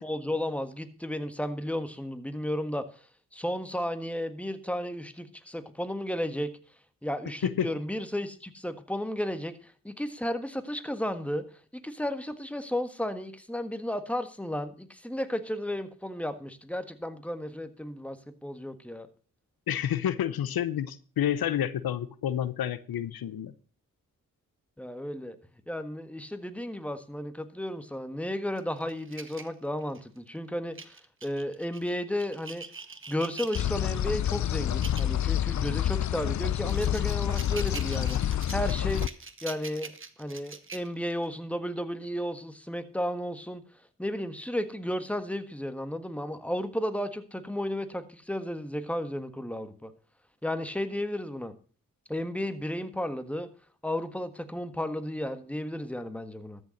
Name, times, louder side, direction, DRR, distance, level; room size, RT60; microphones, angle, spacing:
voice 1, 0.0-2.9 3.3-6.5 7.0-11.4 11.7-18.2 18.4-19.1 24.8-25.4 25.7-31.0 31.2-32.7 33.1-38.2 38.5-39.1 39.4-39.9 40.2-43.6 44.0-49.9 50.4-51.5 52.1-53.5 53.8-56.6, left 1 dB, 5° left, 10 dB, 1.6 m, -33 dB
voice 2, 19.7-23.5, left 10 dB, 85° left, 16 dB, 0.8 m, -29 dB
sound 1, 28.6-30.2 30.7-34.0 34.6-35.1 35.5-35.7 36.2-41.3, right 4 dB, 35° right, 1.2 m, -44 dB
sound 2, 33.5-39.1, left 11 dB, 55° left, 0.5 m, -28 dB
13.5 x 6.8 x 6.4 m, 0.39 s
cardioid pair, 50°, 35 cm